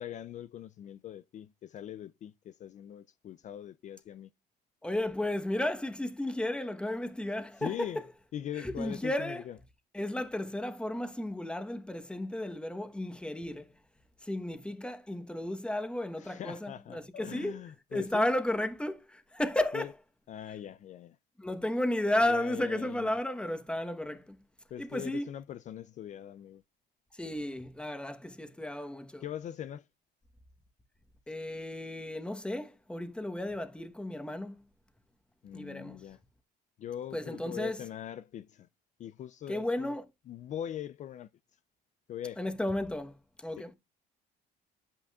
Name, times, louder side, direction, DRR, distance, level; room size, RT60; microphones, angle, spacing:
voice 1, 0.0-4.3 7.6-8.0 8.3-9.6 16.2-18.3 19.7-19.9 20.3-21.2 22.3-23.1 24.7-26.6 29.2-29.9 35.4-36.2 36.8-38.7 39.0-40.0 40.3-41.3 42.1-42.4 43.6-43.7, left 10 dB, 45° left, 0.4 m, -41 dB
voice 2, 4.8-8.1 8.6-9.5 9.9-13.8 14.2-17.6 17.9-19.9 21.4-24.4 24.8-25.3 27.1-29.2 31.3-34.6 35.5-36.1 37.1-37.8 39.5-40.0 42.4-43.7, left 1 dB, 5° left, 1.1 m, -33 dB
10.5 x 8.6 x 2.4 m
cardioid pair, 110°, 17 cm